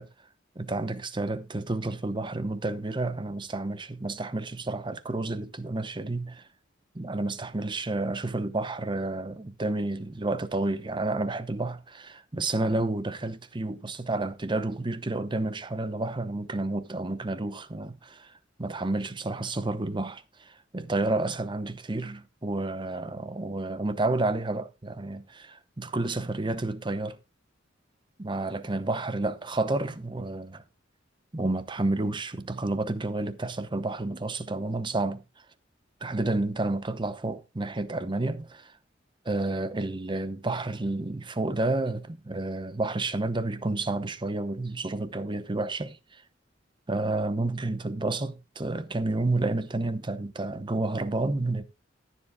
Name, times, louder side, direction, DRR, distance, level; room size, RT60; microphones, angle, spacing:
voice 1, 0.6-6.4 6.9-18.3 18.6-27.2 28.2-30.6 31.3-35.2 36.0-38.8 39.2-46.2 46.9-51.6, right 2 dB, 25° right, 0.8 m, -30 dB
20.0 x 7.3 x 2.2 m
head